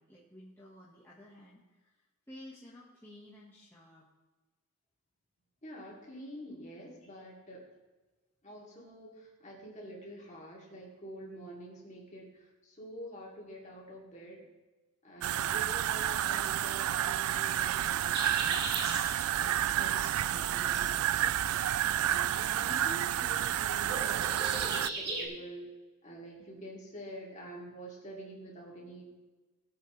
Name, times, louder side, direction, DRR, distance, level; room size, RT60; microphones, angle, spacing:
voice 1, 0.0-1.9 2.3-4.1 22.6-22.8, left 1 dB, 10° left, -7 dB, 1.6 m, -53 dB
voice 2, 5.6-7.7 8.4-14.4 15.0-18.8 19.4-21.3 21.5-25.7 26.0-29.2, right 1 dB, 30° left, -3 dB, 2.9 m, -47 dB
sound 1, 15.2-24.9, right 11 dB, 70° right, 0.3 m, -30 dB
sound 2, 18.1-25.3, right 2 dB, 45° right, 2.3 m, -41 dB
18.5 x 7.9 x 3.3 m, 1.2 s
head